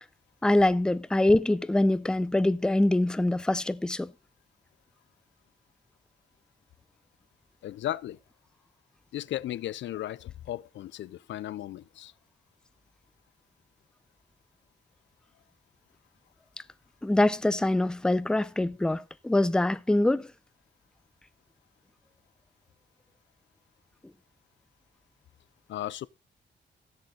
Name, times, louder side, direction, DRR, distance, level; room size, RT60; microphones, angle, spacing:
voice 1, 0.4-4.1 17.0-20.3, left 1 dB, 5° left, 0.5 m, -24 dB
voice 2, 7.6-8.2 9.1-12.1 25.7-26.1, left 13 dB, 75° left, 0.4 m, -35 dB
15.5 x 6.6 x 3.8 m
cardioid pair, 115°, 19 cm